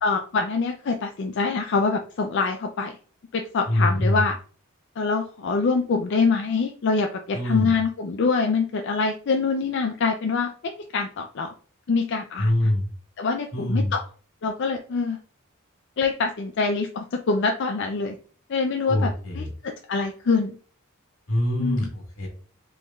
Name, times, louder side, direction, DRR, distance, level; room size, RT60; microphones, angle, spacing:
voice 1, 0.0-3.0 3.3-4.4 5.0-11.5 11.9-12.7 13.2-14.0 14.4-15.2 16.0-18.1 18.5-20.6 21.6-21.9, left 4 dB, 55° left, 4 dB, 0.4 m, -25 dB
voice 2, 3.7-4.2 7.3-7.8 12.4-12.9 13.5-13.9 18.8-19.5 21.3-22.3, left 1 dB, 85° left, 0 dB, 2.2 m, -24 dB
5.1 x 3.5 x 2.3 m, 0.41 s
head